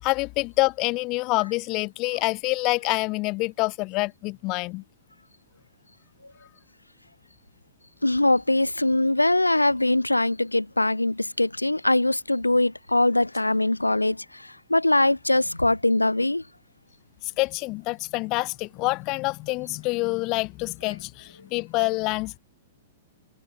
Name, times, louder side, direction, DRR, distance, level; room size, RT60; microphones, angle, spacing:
voice 1, 0.0-4.8 17.4-22.4, left 24 dB, 35° left, 3.3 m, -26 dB
voice 2, 8.0-16.4, left 2 dB, 85° left, 2.9 m, -22 dB
figure-of-eight pair, 105°, 0 cm